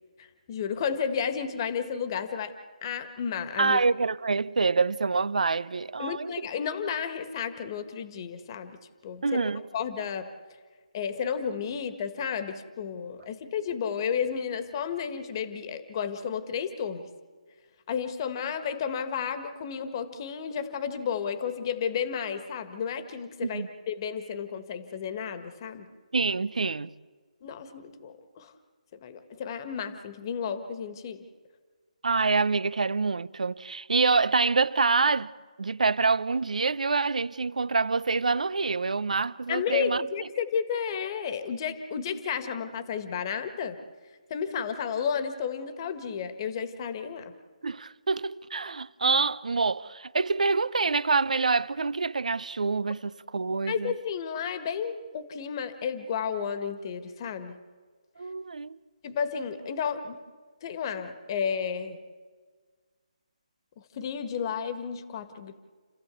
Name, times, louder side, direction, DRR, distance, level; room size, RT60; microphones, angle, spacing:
voice 1, 0.2-2.5 2.8-3.8 6.0-8.8 9.0-9.4 9.7-10.3 10.9-17.1 17.9-25.9 27.4-28.5 28.9-31.2 39.5-43.8 44.3-47.3 53.7-57.6 59.0-60.2 60.6-62.0 63.8-65.5, left 7 dB, 35° left, 1.6 m, -32 dB
voice 2, 3.6-6.3 9.2-9.6 23.4-23.7 26.1-26.9 32.0-35.3 35.6-40.0 47.6-53.9 58.2-58.8, right 4 dB, 75° right, 0.7 m, -26 dB
30.0 x 14.5 x 8.4 m
figure-of-eight pair, 150°, 4 cm